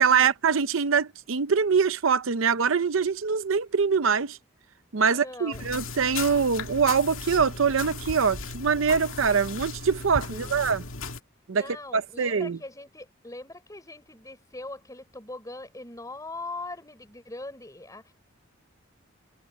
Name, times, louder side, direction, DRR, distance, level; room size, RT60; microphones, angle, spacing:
voice 1, 0.0-4.4 4.9-10.8 11.5-11.6 11.9-12.6, right 6 dB, 75° right, 0.6 m, -24 dB
voice 2, 5.0-5.8 10.3-10.9 11.5-18.1, left 2 dB, 15° left, 5.2 m, -41 dB
sound 1, 5.5-11.2, left 3 dB, 75° left, 2.1 m, -36 dB
head